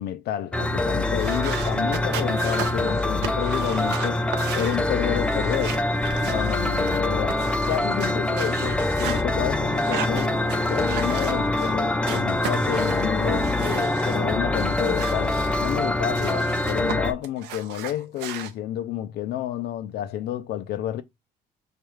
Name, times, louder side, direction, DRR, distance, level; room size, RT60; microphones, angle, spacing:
voice 1, 0.0-4.3 4.5-5.9 6.2-7.4 7.7-10.4 10.7-21.0, left 12 dB, 70° left, 0.4 m, -30 dB
sound 1, 0.5-17.1, left 2 dB, 5° left, 0.4 m, -24 dB
sound 2, 1.1-7.0 7.3-9.2 9.7-11.7 12.0-14.2 14.5-16.9 17.2-18.5, right 10 dB, 85° right, 0.6 m, -36 dB
4.9 x 2.3 x 3.0 m
cardioid pair, 110°, 17 cm